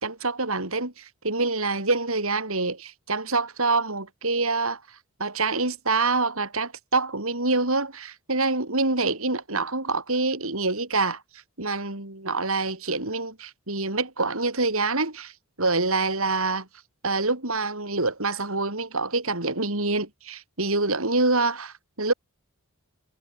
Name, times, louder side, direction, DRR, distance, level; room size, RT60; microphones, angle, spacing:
voice 1, 0.0-4.8 5.2-11.2 11.6-15.3 15.6-16.7 17.0-22.1, right 3 dB, 70° right, 4.9 m, -26 dB
head